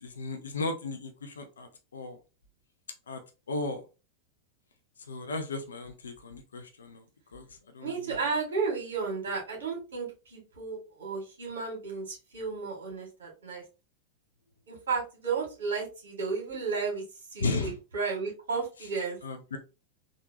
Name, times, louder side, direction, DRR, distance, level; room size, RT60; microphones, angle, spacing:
voice 1, 0.0-2.2 3.1-3.2 3.5-3.8 5.0-7.0 7.3-8.2 17.4-17.8 18.8-18.9 19.2-19.6, left 3 dB, 70° left, 7 dB, 0.6 m, -35 dB
voice 2, 7.8-13.6 14.7-17.0 17.3-19.2, right 5 dB, 65° right, 0 dB, 2.0 m, -33 dB
3.7 x 2.7 x 2.8 m, 0.30 s
figure-of-eight pair, 90°, 0 cm